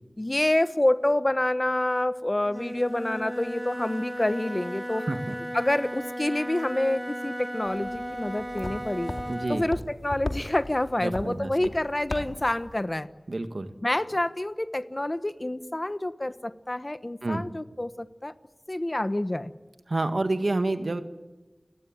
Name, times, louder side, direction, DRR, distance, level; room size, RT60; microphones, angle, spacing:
voice 1, 0.2-5.1 5.5-9.1 9.5-13.1 13.8-18.3 18.7-19.5, left 1 dB, 35° left, 12 dB, 1.1 m, -27 dB
Wind instrument woodwind instrument, 2.4-9.7, equal, 20° right, 4.0 m, -35 dB
voice 2, 4.9-5.4 9.3-9.7 11.0-11.5 13.3-13.7 17.2-17.5 19.9-21.0, right 2 dB, 75° right, 8 dB, 1.8 m, -28 dB
sound 1, 7.7-12.9, left 2 dB, 70° left, 2.5 m, -38 dB
29.5 x 17.5 x 9.2 m, 1.1 s
wide cardioid pair, 45°, 0 cm